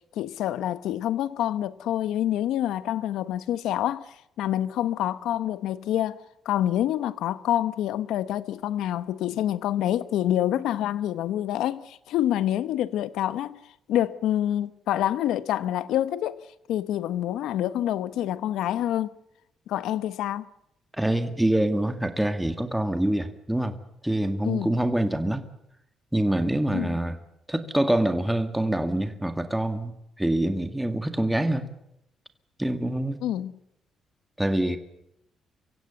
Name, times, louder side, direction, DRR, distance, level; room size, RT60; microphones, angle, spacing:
voice 1, 0.1-13.6 13.9-16.4 16.7-19.1 19.7-20.5 24.4-24.8 26.7-26.9 33.2-33.5, left 12 dB, 85° left, 1.0 m, -27 dB
voice 2, 20.9-23.8 24.0-25.4 26.1-27.2 27.5-31.7 32.6-33.2 34.4-34.8, right 1 dB, 5° right, 1.9 m, -25 dB
24.0 x 16.0 x 8.1 m
cardioid pair, 90°, 0 cm